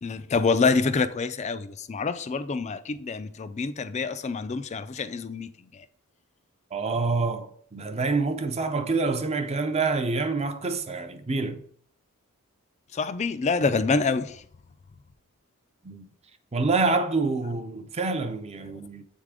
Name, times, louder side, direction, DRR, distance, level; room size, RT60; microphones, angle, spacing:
voice 1, 0.0-5.5 12.9-14.4, left 4 dB, 30° left, 0.4 m, -26 dB
voice 2, 6.7-11.6 15.8-16.1 16.5-19.0, right 3 dB, 30° right, 0.5 m, -27 dB
7.4 x 3.6 x 4.8 m
head